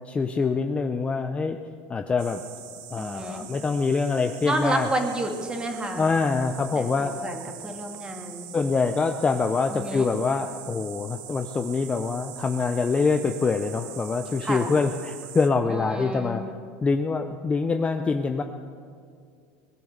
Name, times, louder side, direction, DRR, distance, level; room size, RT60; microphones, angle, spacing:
voice 1, 0.1-1.6 1.9-2.4 2.9-4.9 6.0-7.1 8.5-16.4 16.8-18.4, left 4 dB, 15° left, 6 dB, 0.6 m, -25 dB
sound 1, 2.2-15.5, right 10 dB, 70° right, 1.4 m, -43 dB
voice 2, 3.0-3.5 4.4-6.1 6.8-8.5 9.7-10.1 14.4-14.7 15.7-16.5, right 1 dB, 15° right, 3 dB, 2.0 m, -30 dB
20.5 x 10.5 x 6.6 m, 2.3 s
supercardioid pair, 140°, 7 cm